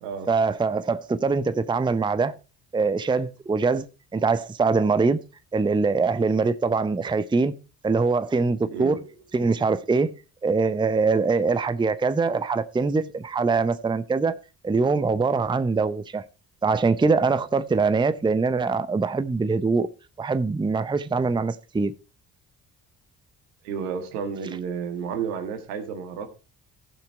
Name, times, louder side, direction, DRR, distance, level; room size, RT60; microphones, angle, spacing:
voice 1, 0.3-2.3 2.7-3.9 4.1-5.2 5.5-9.0 9.3-14.4 14.6-16.2 16.6-19.9 20.2-21.9, right 4 dB, 10° right, 0.6 m, -23 dB
voice 2, 8.7-9.1 23.6-26.3, right 6 dB, 75° right, 1.7 m, -31 dB
15.5 x 5.8 x 4.4 m
figure-of-eight pair, 45°, 48 cm